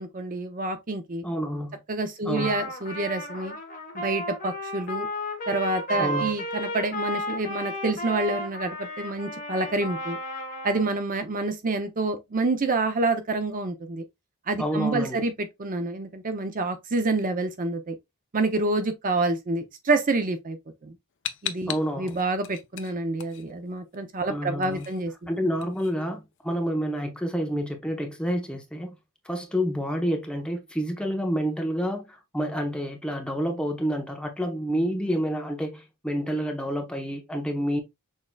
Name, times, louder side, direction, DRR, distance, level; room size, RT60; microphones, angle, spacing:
voice 1, 0.0-1.2 1.9-3.6 3.9-5.1 5.5-10.2 10.6-14.0 14.5-17.9 18.3-20.6 20.8-20.9 21.4-25.3, right 2 dB, 35° right, 0.6 m, -28 dB
voice 2, 1.2-1.8 2.2-2.6 6.0-6.4 14.6-15.2 21.7-22.2 24.3-24.9 25.3-28.9 29.2-37.8, equal, 5° left, 0.9 m, -29 dB
Trumpet, 2.4-10.9, equal, 40° left, 1.2 m, -33 dB
sound 1, 21.2-24.0 24.3-26.6, left 11 dB, 55° left, 0.6 m, -38 dB
6.3 x 3.7 x 2.2 m
head